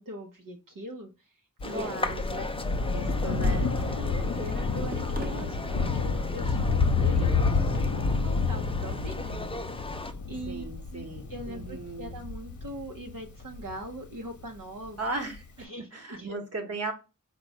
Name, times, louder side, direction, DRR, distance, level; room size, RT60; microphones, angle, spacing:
voice 1, 0.0-2.5 3.0-3.4 3.8-9.4 10.3-10.6 10.9-15.0 15.6-16.4, right 1 dB, 75° right, 1 dB, 0.8 m, -41 dB
Thunder, 1.6-14.5 15.4-15.5, left 4 dB, 60° left, 0.8 m, -29 dB
sound 1, 1.6-10.1, left 2 dB, 15° left, 0.5 m, -38 dB
voice 2, 1.7-2.5 2.9-3.7 7.2-7.5 10.5-12.1 15.0-16.9, right 2 dB, 45° right, 4 dB, 1.1 m, -37 dB
sound 2, 3.1-8.4, right 2 dB, 25° right, 0.7 m, -44 dB
4.0 x 2.3 x 4.6 m, 0.29 s
wide cardioid pair, 45°, 33 cm